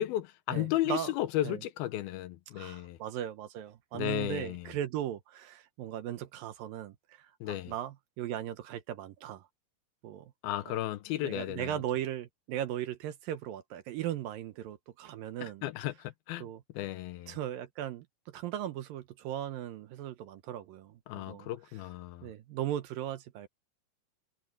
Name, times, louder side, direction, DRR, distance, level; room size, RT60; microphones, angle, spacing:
voice 1, 0.0-3.0 3.9-4.6 7.4-7.7 10.4-11.8 15.4-16.5 16.8-17.3 21.1-22.3, left 14 dB, 75° left, 2.5 m, -34 dB
voice 2, 0.5-1.1 1.4-1.6 2.5-9.5 10.0-10.3 10.7-10.8 11.1-15.6 16.4-16.6 17.3-21.5 22.2-23.5, right 11 dB, 70° right, 2.4 m, -38 dB
omnidirectional pair, 4.6 m